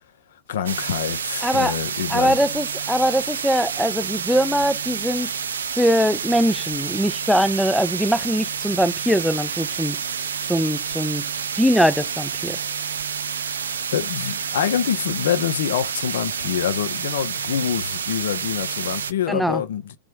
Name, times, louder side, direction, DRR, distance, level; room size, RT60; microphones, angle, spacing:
voice 1, 0.5-2.3 13.4-20.0, left 9 dB, 60° left, 0.7 m, -26 dB
sound 1, 0.7-19.1, right 7 dB, 70° right, 0.4 m, -29 dB
voice 2, 1.4-1.8 2.1-5.3 5.7-10.0 10.5-11.2 11.6-12.6 19.3-19.6, equal, ahead, 0.5 m, -21 dB
3.4 x 3.2 x 4.6 m
figure-of-eight pair, 90°, 0 cm